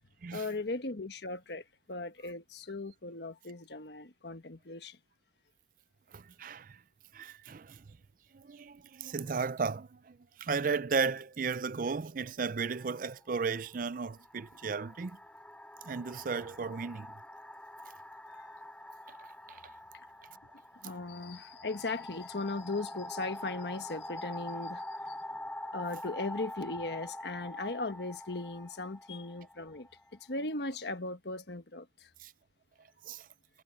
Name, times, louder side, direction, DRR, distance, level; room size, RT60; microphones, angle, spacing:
voice 1, 0.3-5.0 18.3-18.5 20.8-25.4 25.7-32.1, left 2 dB, 70° left, 1.3 m, -38 dB
voice 2, 6.1-6.8 7.1-7.8 8.3-15.2 15.8-17.1 19.1-19.2 19.5-19.6 32.2-32.3 33.0-33.3, right 5 dB, 50° right, 0.4 m, -35 dB
sound 1, 12.6-12.8 13.8-30.4, left 1 dB, 5° left, 3.4 m, -45 dB
head